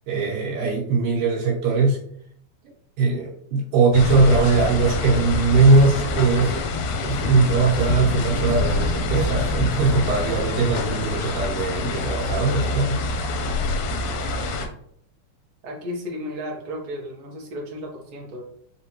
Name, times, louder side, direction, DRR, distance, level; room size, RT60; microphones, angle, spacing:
voice 1, 0.1-2.0 3.0-6.6 7.0-13.0, right 4 dB, 90° right, -4 dB, 2.5 m, -20 dB
sound 1, 3.9-14.7, left 2 dB, 80° left, 2.1 m, -25 dB
Drum kit, 5.4-5.9 6.2-7.3 7.6-8.7 9.0-10.0 10.3-10.5, right 1 dB, 25° right, 1.5 m, -41 dB
voice 2, 15.6-18.4, left 1 dB, 65° right, 0 dB, 2.0 m, -34 dB
5.2 x 3.3 x 2.9 m, 0.67 s
omnidirectional pair, 3.5 m